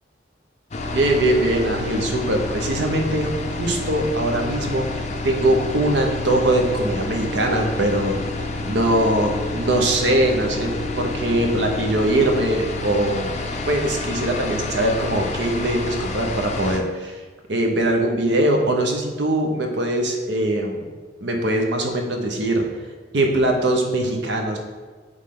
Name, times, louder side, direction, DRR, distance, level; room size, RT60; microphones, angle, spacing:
sound 1, 0.7-16.8, left 2 dB, 35° left, 0.5 m, -29 dB
voice 1, 0.9-10.7 11.0-13.3 13.7-17.2 17.5-20.9 21.2-22.7 23.1-24.6, right 1 dB, 65° right, 2 dB, 0.9 m, -21 dB
8.0 x 3.3 x 3.8 m, 1.4 s
head